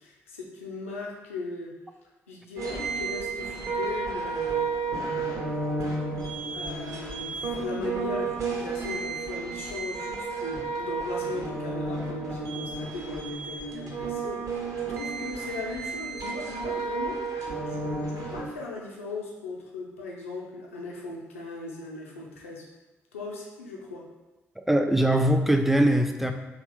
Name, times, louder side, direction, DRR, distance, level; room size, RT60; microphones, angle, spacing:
voice 1, 0.0-1.7 2.3-5.5 6.5-22.6 23.1-24.0, left 3 dB, 85° left, -2 dB, 0.4 m, -38 dB
sound 1, 2.6-18.4, right 4 dB, 50° right, 0.6 m, -32 dB
voice 2, 24.6-26.3, right 1 dB, 5° right, 5 dB, 0.3 m, -22 dB
2.8 x 2.2 x 3.1 m, 1.1 s
figure-of-eight pair, 40°, 7 cm